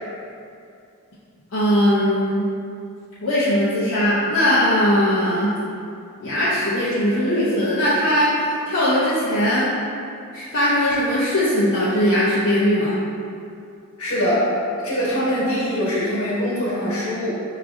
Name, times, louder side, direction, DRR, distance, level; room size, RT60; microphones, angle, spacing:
voice 1, 1.5-2.5 3.2-5.6 6.2-9.7 10.3-13.0, equal, 65° left, -11 dB, 0.7 m, -19 dB
voice 2, 14.0-14.5 14.8-17.3, equal, 80° left, -8 dB, 1.4 m, -23 dB
4.8 x 3.1 x 2.6 m, 2.5 s
head